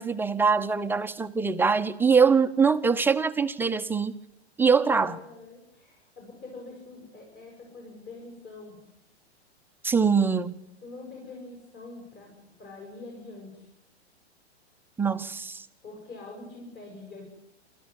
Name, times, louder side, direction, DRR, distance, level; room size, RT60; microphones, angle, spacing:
voice 1, 0.0-4.1 4.6-5.2 9.8-10.5 15.0-15.7, right 5 dB, 5° right, 8 dB, 0.8 m, -23 dB
voice 2, 4.8-8.8 10.8-13.7 15.8-17.2, left 3 dB, 30° left, 0 dB, 7.8 m, -44 dB
28.0 x 13.5 x 9.9 m, 0.83 s
hypercardioid pair, 120°, 33 cm